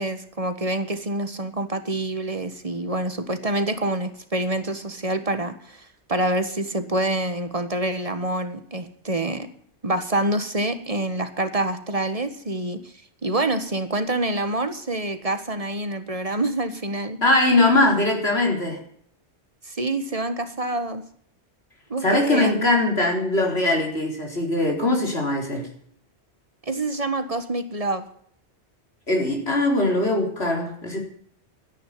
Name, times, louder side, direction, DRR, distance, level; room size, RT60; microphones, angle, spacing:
voice 1, 0.0-9.5 9.8-12.9 13.2-17.2 19.6-21.0 21.9-22.6 26.7-28.0, right 2 dB, 30° right, 10 dB, 1.5 m, -26 dB
voice 2, 17.2-18.8 22.0-25.7 29.1-31.0, left 2 dB, 65° left, 1 dB, 4.5 m, -21 dB
13.0 x 10.5 x 9.6 m, 0.63 s
omnidirectional pair, 1.1 m